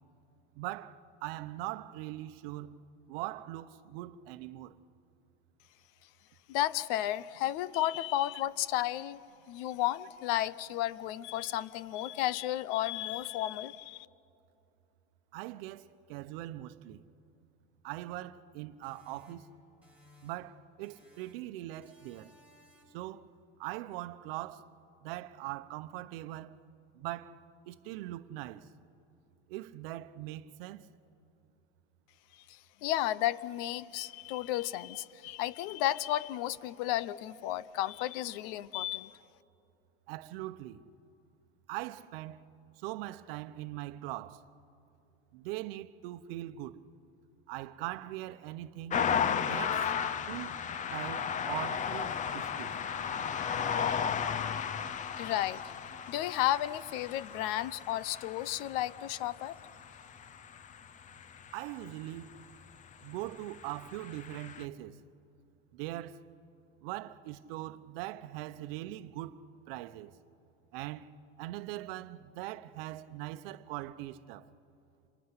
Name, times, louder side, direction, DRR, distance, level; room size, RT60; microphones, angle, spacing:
voice 1, 0.6-2.8 3.1-4.8 15.3-17.0 17.8-19.5 20.2-22.3 22.9-23.3 23.6-24.7 25.0-26.6 26.9-27.4 27.7-28.7 29.5-30.9 40.1-40.8 41.7-42.5 42.8-44.4 45.3-46.8 47.5-49.0 49.4-49.9 50.3-50.6 50.9-52.7 61.5-62.3 63.0-65.0 65.7-66.2 66.8-69.4 69.7-70.1 70.7-71.1 71.4-74.5, right 16 dB, 70° right, 0.9 m, -41 dB
voice 2, 6.5-9.2 9.5-14.1 32.5-39.1 55.2-55.6 56.1-59.6, left 14 dB, 65° left, 0.8 m, -33 dB
sound 1, 18.8-20.5 20.8-21.5 21.8-23.1, left 2 dB, 5° right, 4.3 m, -60 dB
sound 2, 48.9-62.1 63.1-64.6, left 7 dB, 25° left, 0.7 m, -35 dB
27.5 x 20.5 x 9.7 m
supercardioid pair, 140°, 29 cm